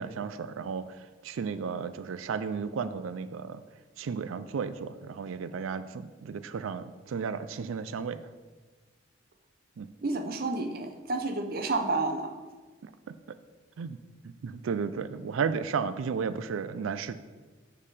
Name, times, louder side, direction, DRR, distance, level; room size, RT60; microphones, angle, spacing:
voice 1, 0.0-3.6 4.0-8.2 9.8-9.9 13.8-14.0 14.4-17.1, right 6 dB, 90° right, 12 dB, 0.4 m, -33 dB
voice 2, 10.0-12.3, right 3 dB, 50° right, 5 dB, 0.7 m, -30 dB
6.6 x 5.5 x 4.9 m, 1.3 s
head